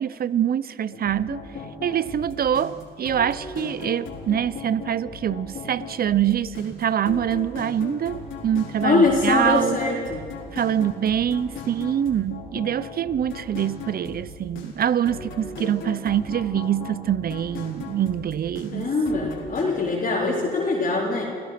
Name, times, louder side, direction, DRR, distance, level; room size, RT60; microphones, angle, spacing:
voice 1, 0.0-1.4 1.8-9.8 10.5-18.9, right 9 dB, 50° right, 0.6 m, -25 dB
sound 1, 0.9-19.7, left 4 dB, 75° left, 4.2 m, -38 dB
voice 2, 8.8-10.2 18.7-21.2, left 3 dB, 45° left, 4.0 m, -22 dB
28.5 x 16.0 x 5.9 m
cardioid pair, 90°, 20 cm